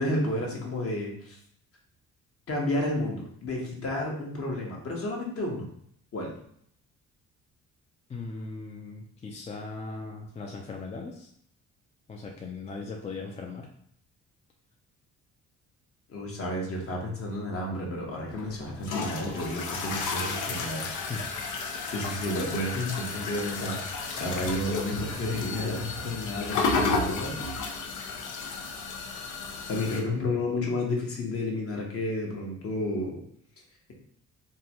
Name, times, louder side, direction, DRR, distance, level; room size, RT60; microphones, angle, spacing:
voice 1, 0.0-1.4 2.5-5.7 6.1-6.3 16.1-20.9 21.9-27.8 29.7-33.2, left 1 dB, 50° left, -1 dB, 1.0 m, -31 dB
voice 2, 8.1-11.3 12.1-13.7 21.1-21.3, left 3 dB, 20° left, 0 dB, 0.4 m, -38 dB
sound 1, 18.3-30.0, left 4 dB, 80° left, 0.6 m, -32 dB
3.7 x 2.2 x 2.8 m, 0.67 s
cardioid pair, 90°, 30 cm